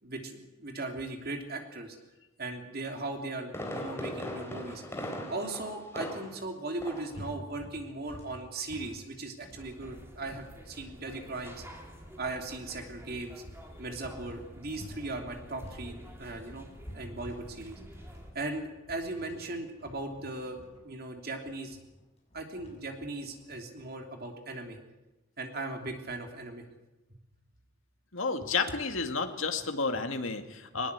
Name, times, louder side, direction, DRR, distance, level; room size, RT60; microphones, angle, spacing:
voice 1, 0.0-2.0 2.4-4.8 5.3-11.6 12.2-13.4 13.8-16.7 16.9-17.8 18.3-21.8 22.3-24.8 25.4-26.6, right 2 dB, 50° right, 4 dB, 3.1 m, -38 dB
Fireworks, 3.1-6.5 6.8-7.2 7.5-7.6, equal, 15° left, 3.4 m, -39 dB
sound 1, 6.8-15.0 15.3-24.1, equal, 30° left, 6.6 m, -50 dB
sound 2, 9.6-18.3, equal, 10° right, 2.9 m, -49 dB
voice 2, 28.1-30.9, left 4 dB, 80° left, 6 dB, 2.1 m, -31 dB
20.0 x 19.5 x 8.3 m, 1.0 s
head